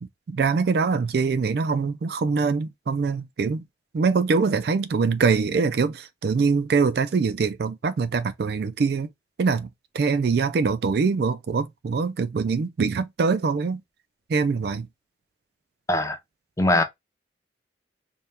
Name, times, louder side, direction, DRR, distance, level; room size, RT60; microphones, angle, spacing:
voice 1, 0.0-3.6 3.9-9.1 9.4-9.7 9.9-13.8 14.3-14.9, right 5 dB, 55° right, 0.3 m, -23 dB
voice 2, 15.9-16.2 16.6-16.8, left 2 dB, 15° left, 0.5 m, -21 dB
4.1 x 2.2 x 3.4 m
head